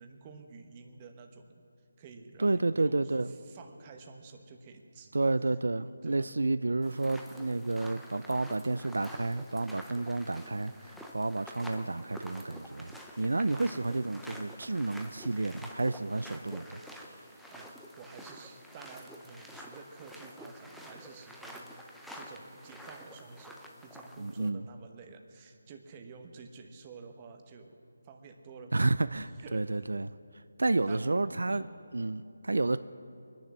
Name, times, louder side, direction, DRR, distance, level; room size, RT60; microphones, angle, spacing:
voice 1, 0.0-1.5 2.0-5.2 6.0-6.3 17.5-27.8 28.0-28.7 29.4-29.7 30.9-31.2 31.5-31.7, right 4 dB, 20° right, 4 dB, 1.1 m, -50 dB
voice 2, 2.4-3.3 5.1-16.8 24.2-24.6 28.7-30.1 30.6-31.6 31.9-32.8, right 2 dB, 80° right, 14 dB, 0.4 m, -30 dB
sound 1, 6.8-24.5, equal, ahead, 0.7 m, -48 dB
22.5 x 10.5 x 6.2 m, 2.6 s
figure-of-eight pair, 165°, 0 cm